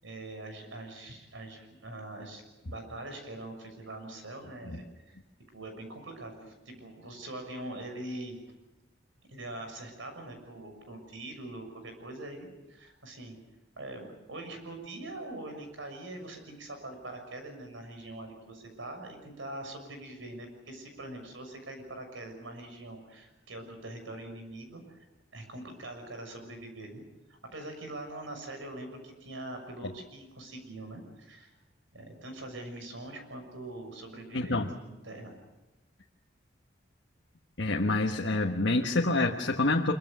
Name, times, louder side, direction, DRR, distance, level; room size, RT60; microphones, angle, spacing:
voice 1, 0.0-5.2 5.5-8.3 9.3-13.4 13.8-25.0 25.3-27.0 27.3-31.5 31.9-35.4, right 1 dB, 85° right, 5 dB, 6.6 m, -43 dB
voice 2, 34.3-34.7 37.6-39.9, left 2 dB, 70° left, 1 dB, 1.4 m, -27 dB
25.5 x 23.5 x 6.8 m, 1.0 s
head